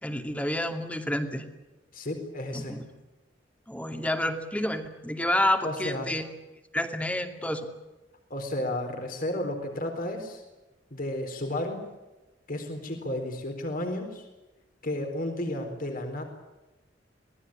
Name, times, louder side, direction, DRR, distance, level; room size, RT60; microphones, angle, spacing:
voice 1, 0.0-1.4 2.5-2.8 3.7-6.2 6.7-7.7, left 1 dB, 10° left, 6 dB, 2.5 m, -29 dB
voice 2, 1.9-2.8 5.6-6.1 8.3-10.4 10.9-11.8 12.5-14.3 14.8-16.2, left 1 dB, 50° left, 4 dB, 4.1 m, -32 dB
26.5 x 19.0 x 8.8 m, 1.1 s
head